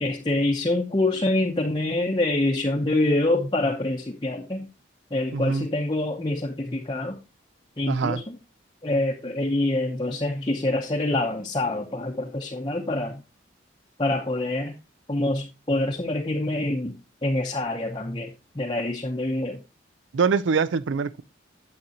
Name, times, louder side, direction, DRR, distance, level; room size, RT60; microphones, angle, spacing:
voice 1, 0.0-4.7 5.1-7.2 7.8-8.4 8.8-13.2 14.0-14.7 15.1-16.9 17.2-19.6, left 2 dB, 25° left, 0.7 m, -26 dB
voice 2, 5.3-5.7 7.9-8.2 20.1-21.2, right 5 dB, 80° right, 0.4 m, -24 dB
9.1 x 7.2 x 2.8 m
head